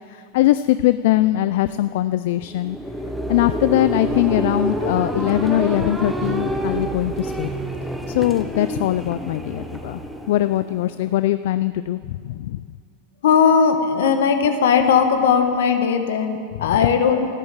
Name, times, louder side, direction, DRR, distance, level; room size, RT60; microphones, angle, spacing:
voice 1, 0.1-2.8 3.3-7.5 8.1-10.0 10.3-12.6, left 14 dB, 65° left, 12 dB, 0.3 m, -21 dB
sound 1, 2.4-11.1, right 1 dB, ahead, 0.8 m, -27 dB
voice 2, 13.2-17.3, left 6 dB, 85° left, 7 dB, 1.2 m, -18 dB
13.0 x 6.5 x 8.9 m, 2.4 s
supercardioid pair, 135°, 0 cm